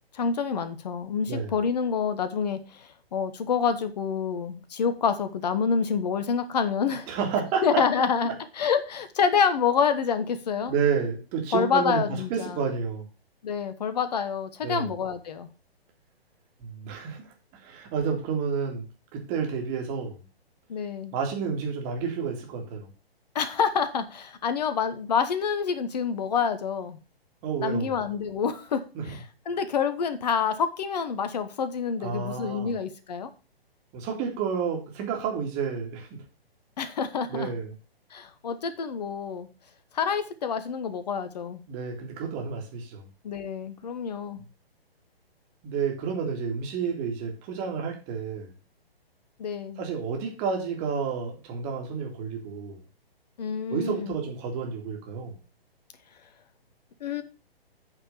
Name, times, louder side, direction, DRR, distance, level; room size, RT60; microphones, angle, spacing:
voice 1, 0.1-7.1 7.6-10.7 11.5-12.6 13.4-15.5 20.7-21.1 23.3-27.0 27.6-33.3 36.8-37.5 38.1-39.5 39.9-41.6 43.2-44.4 49.4-49.8 53.4-54.2 57.0-57.2, left 6 dB, 40° left, 11 dB, 1.2 m, -27 dB
voice 2, 7.1-7.8 8.2-8.3 10.7-12.0 12.3-13.1 14.6-14.9 16.6-17.3 17.6-18.8 19.1-20.2 21.1-22.9 27.4-27.9 29.0-29.2 32.0-32.8 33.9-36.1 37.3-37.7 41.7-43.1 45.6-48.5 49.8-52.8 53.7-55.4, right 6 dB, 20° right, 1 dB, 2.2 m, -30 dB
8.7 x 4.5 x 6.7 m, 0.33 s
figure-of-eight pair, 130°, 31 cm